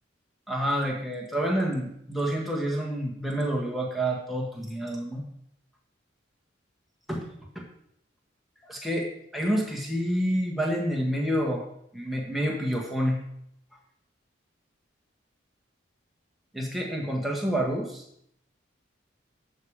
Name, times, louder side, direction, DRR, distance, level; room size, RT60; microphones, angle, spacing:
voice 1, 0.5-5.2 7.1-7.3 7.5-7.6 8.6-11.6 11.9-13.2 16.5-18.0, equal, ahead, -2 dB, 1.7 m, -28 dB
13.0 x 5.2 x 4.9 m, 0.72 s
head